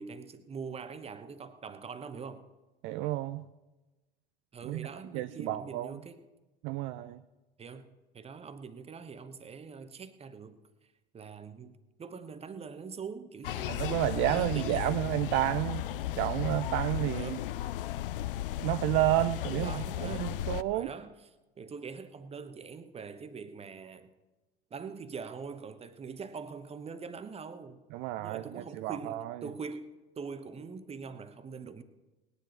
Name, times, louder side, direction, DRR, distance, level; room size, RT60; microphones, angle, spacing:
voice 1, 0.0-2.5 4.5-6.2 7.6-10.6 11.1-13.8 14.3-15.0 17.1-17.5 19.5-20.4 20.7-24.1 24.7-27.8 28.2-31.8, right 5 dB, 20° right, 1.0 m, -43 dB
voice 2, 2.8-3.5 4.7-4.9 5.1-6.0 6.6-7.2 13.7-17.4 18.6-20.9 27.9-29.4, right 15 dB, 40° right, 0.5 m, -31 dB
sound 1, 13.4-20.6, left 13 dB, 65° left, 0.5 m, -35 dB
20.0 x 9.8 x 4.4 m
figure-of-eight pair, 70°, 30 cm